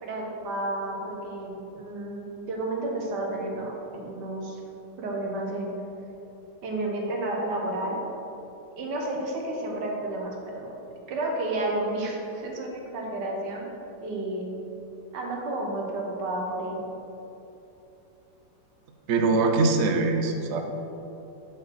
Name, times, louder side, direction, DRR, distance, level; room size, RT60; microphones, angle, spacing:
voice 1, 0.0-4.6 5.0-5.7 6.6-8.0 8.8-10.7 11.1-13.7 14.0-14.5 15.1-16.9, right 2 dB, 65° right, -1 dB, 1.6 m, -31 dB
voice 2, 19.1-20.6, right 3 dB, 85° right, 4 dB, 0.6 m, -22 dB
6.1 x 5.0 x 6.1 m, 3.0 s
omnidirectional pair, 2.0 m